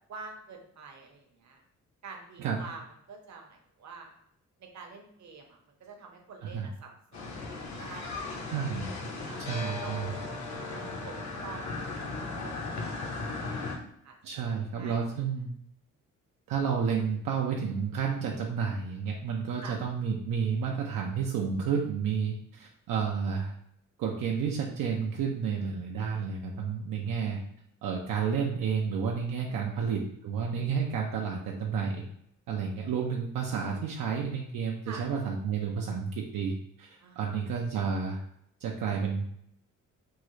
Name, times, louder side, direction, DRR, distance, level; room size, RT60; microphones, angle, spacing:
voice 1, 0.1-1.6 2.0-2.8 3.1-4.1 4.6-8.5 9.2-10.2 10.6-11.6 12.3-12.9 13.2-14.1 14.5-15.0 19.6-19.8 29.5-29.9 34.9-35.0 37.0-37.5, right 4 dB, 60° right, 1 dB, 0.8 m, -47 dB
sound 1, 7.1-13.8, left 3 dB, 60° left, 0.8 m, -37 dB
voice 2, 8.5-9.1 9.4-10.1 14.2-15.5 16.5-23.5 24.0-27.4 27.8-32.0 32.5-38.2 38.6-39.3, right 6 dB, 85° right, -1 dB, 0.5 m, -31 dB
3.6 x 2.0 x 3.1 m, 0.71 s
cardioid pair, 75°, 32 cm